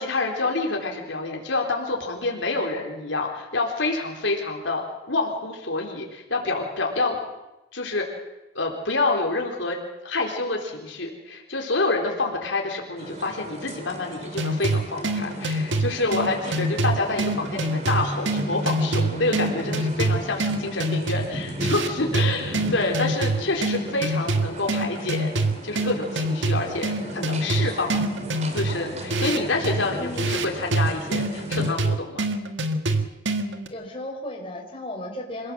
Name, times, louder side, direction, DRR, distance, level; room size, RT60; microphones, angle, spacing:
voice 1, 0.0-7.2 7.7-8.2 8.5-9.8 10.0-25.3 25.6-28.0 28.5-32.3, left 3 dB, 80° left, 1 dB, 4.1 m, -27 dB
sound 1, 13.0-31.7, right 1 dB, 35° right, 3.7 m, -36 dB
sound 2, 14.4-33.7, right 2 dB, 75° right, 1.9 m, -26 dB
voice 2, 30.0-30.5 33.7-35.5, left 1 dB, 30° left, 0 dB, 4.6 m, -35 dB
27.0 x 17.5 x 7.6 m, 1.0 s
head